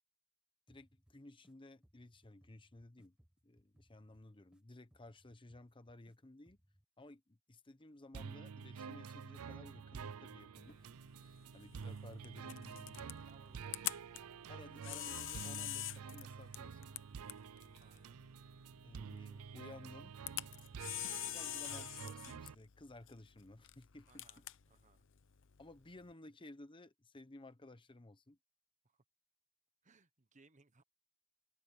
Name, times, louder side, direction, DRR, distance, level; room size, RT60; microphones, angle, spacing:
voice 1, 0.7-3.2 3.4-6.6 7.0-10.9 11.2-13.2 14.5-16.9 18.8-20.2 21.3-24.4 25.6-28.4, left 2 dB, 25° left, 1.0 m, -56 dB
sound 1, 0.7-1.5 1.8-4.6 4.9-6.1 6.5-6.8, equal, 5° right, 1.3 m, -71 dB
sound 2, 8.1-22.5, right 6 dB, 80° right, 0.5 m, -49 dB
Camera, 10.7-26.1, left 14 dB, 60° left, 0.8 m, -47 dB
voice 2, 11.2-11.5 13.2-14.0 17.8-18.2 24.0-25.0 28.8-29.0 29.8-30.8, right 4 dB, 35° right, 1.2 m, -68 dB
open air
head